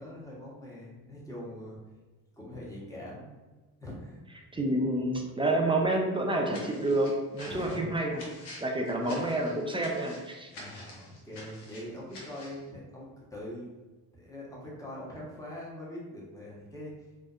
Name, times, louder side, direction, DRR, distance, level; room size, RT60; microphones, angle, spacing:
voice 1, 0.0-1.8 2.4-3.3 3.8-4.2 7.4-7.9 8.6-8.7 10.5-13.7 14.1-16.9, left 1 dB, 10° left, -5 dB, 1.0 m, -43 dB
voice 2, 4.5-8.2 8.6-10.5, right 1 dB, 15° right, 1 dB, 0.4 m, -28 dB
sound 1, 6.5-12.6, left 1 dB, 85° left, 0.7 m, -48 dB
2.6 x 2.1 x 2.4 m, 1.2 s
supercardioid pair, 50°, 39 cm